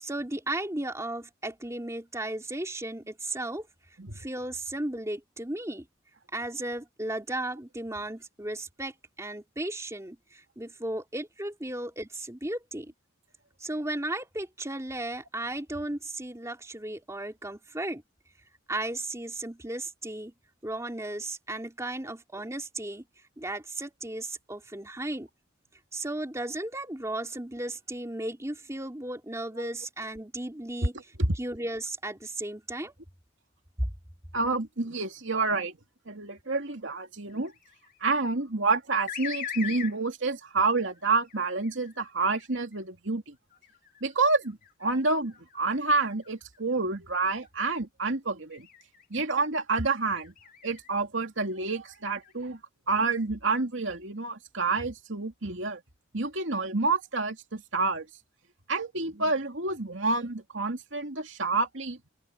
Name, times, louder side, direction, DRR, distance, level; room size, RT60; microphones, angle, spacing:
voice 1, 0.0-3.6 4.2-5.8 6.3-8.9 9.2-10.2 10.6-12.9 13.6-18.0 18.7-20.3 20.6-23.0 23.4-25.3 25.9-31.0 31.4-32.9, right 1 dB, 15° right, 3.1 m, -35 dB
voice 2, 30.8-31.4 34.3-35.8 36.1-37.5 38.0-43.4 44.0-48.7 49.1-50.3 50.6-52.6 52.9-55.8 56.1-58.1 58.7-62.0, right 3 dB, 70° right, 2.6 m, -28 dB
sound 1, 37.3-38.1 39.1-40.0 40.9-42.8 43.5-46.8 47.3-47.6 48.5-49.4 50.2-50.9 51.4-52.3, left 8 dB, 45° left, 1.9 m, -43 dB
head